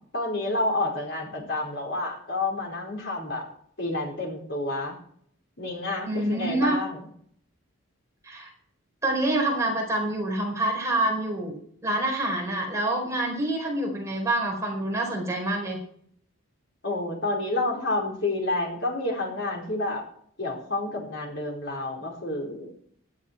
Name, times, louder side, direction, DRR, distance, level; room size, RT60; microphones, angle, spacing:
voice 1, 0.1-3.4 3.8-5.0 5.6-7.0 16.8-20.0 20.4-22.7, left 2 dB, 55° left, 0 dB, 4.6 m, -29 dB
voice 2, 6.0-6.8 8.2-8.5 9.0-15.8, right 1 dB, 15° right, -2 dB, 4.6 m, -27 dB
17.0 x 12.0 x 4.6 m, 0.63 s
head